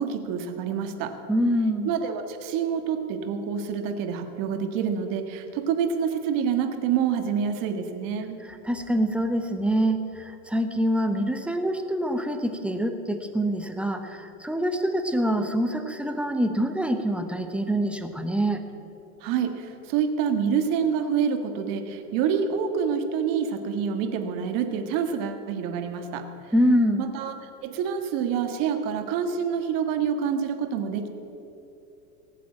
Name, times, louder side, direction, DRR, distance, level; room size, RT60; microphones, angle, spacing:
voice 1, 0.0-1.1 1.8-8.4 19.2-26.3 27.0-27.3 27.6-31.1, right 7 dB, 45° right, 6 dB, 1.6 m, -27 dB
voice 2, 1.3-1.9 8.4-18.6 26.5-27.1, equal, 5° right, 6 dB, 0.7 m, -25 dB
17.5 x 7.5 x 8.6 m, 2.9 s
supercardioid pair, 130°, 44 cm